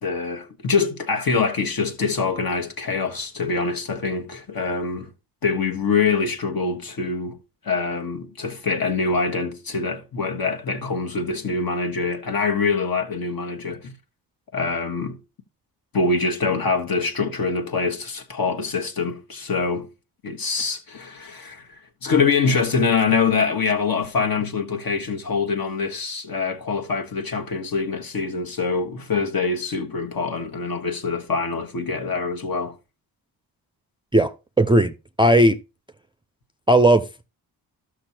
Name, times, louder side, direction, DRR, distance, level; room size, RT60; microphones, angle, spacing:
voice 1, 0.0-5.1 5.4-7.4 7.6-13.9 14.5-15.2 15.9-19.9 20.2-21.7 22.0-32.7, left 4 dB, 50° left, 1.5 m, -24 dB
voice 2, 34.1-34.9 35.2-35.6 36.7-37.0, right 1 dB, 10° right, 0.5 m, -16 dB
13.0 x 6.3 x 2.8 m
supercardioid pair, 50°, 46 cm